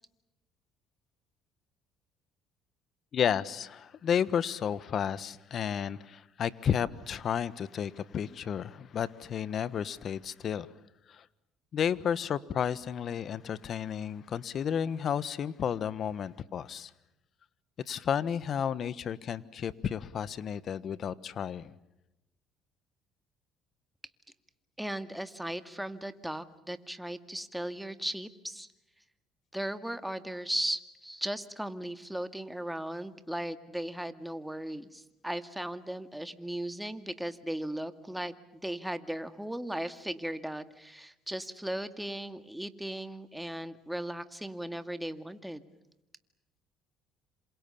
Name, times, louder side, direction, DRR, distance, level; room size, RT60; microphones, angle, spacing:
voice 1, 3.1-10.7 11.1-11.2 11.7-16.9 17.9-21.7, left 8 dB, 55° left, 18 dB, 1.3 m, -32 dB
voice 2, 24.8-28.7 29.5-38.3 38.6-45.6, right 1 dB, 5° right, 10 dB, 2.2 m, -37 dB
27.5 x 27.0 x 7.1 m, 0.92 s
supercardioid pair, 75°, 0 cm